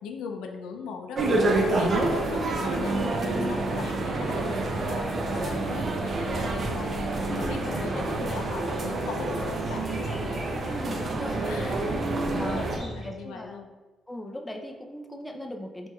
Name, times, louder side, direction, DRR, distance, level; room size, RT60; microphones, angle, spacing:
voice 1, 0.0-6.9 7.3-10.4 10.7-11.1 11.4-11.8 12.3-13.7, left 5 dB, 90° left, 3 dB, 0.4 m, -40 dB
sound 1, 1.1-12.8, right 2 dB, 50° right, 0.5 m, -28 dB
sound 2, 1.3-11.5, left 1 dB, 50° left, 0.8 m, -45 dB
sound 3, 2.5-13.0, equal, 30° right, 1.4 m, -44 dB
voice 2, 10.7-11.9 12.3-13.6 14.1-15.9, left 1 dB, 10° left, 1 dB, 0.4 m, -38 dB
4.3 x 3.0 x 2.3 m, 1.3 s
cardioid pair, 90°, 0 cm